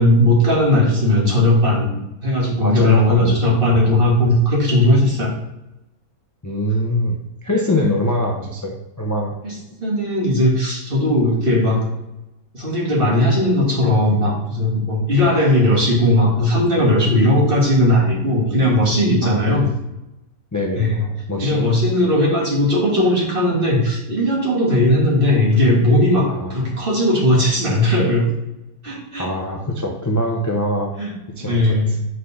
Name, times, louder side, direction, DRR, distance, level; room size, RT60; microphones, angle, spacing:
voice 1, 0.0-5.3 9.4-9.5 9.8-11.9 12.5-19.7 20.8-21.0 21.4-28.3 28.8-29.3 31.0-31.1 31.4-31.9, left 1 dB, 40° right, -3 dB, 1.9 m, -17 dB
voice 2, 2.6-3.9 6.4-7.2 7.4-9.4 15.2-15.3 19.2-19.7 20.5-20.9 21.3-21.7 26.3-26.8 29.2-30.9 31.4-32.0, left 1 dB, 20° left, 0 dB, 0.4 m, -23 dB
4.9 x 4.4 x 5.5 m, 0.92 s
omnidirectional pair, 1.5 m